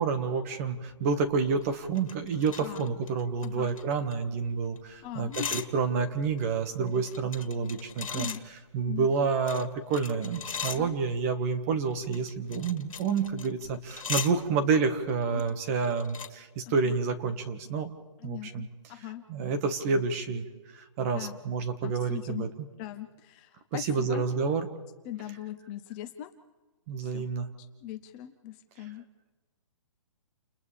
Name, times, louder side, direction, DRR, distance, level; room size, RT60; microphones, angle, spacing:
voice 1, 0.0-8.3 8.7-17.9 18.2-18.7 19.3-20.4 20.7-22.5 23.7-24.7 26.9-27.5, right 5 dB, 25° right, 8 dB, 1.7 m, -29 dB
sound 1, 1.3-4.5 4.8-4.9 5.0-5.7 6.1-8.4 9.1-11.2 11.9-14.3 15.1-15.5 15.8-16.3, left 7 dB, 90° left, 1.9 m, -39 dB
voice 2, 3.4-3.8 5.0-5.6 7.5-7.7 8.1-8.4 8.9-9.1 10.7-11.0 15.3-15.4 16.7-16.9 18.2-19.2 21.1-21.4 21.8-22.5 22.8-24.2 25.0-26.3 27.0-27.3 27.6-29.0, left 12 dB, 20° left, 7 dB, 0.7 m, -40 dB
29.5 x 29.0 x 3.5 m, 1.3 s
hypercardioid pair, 165°, 17 cm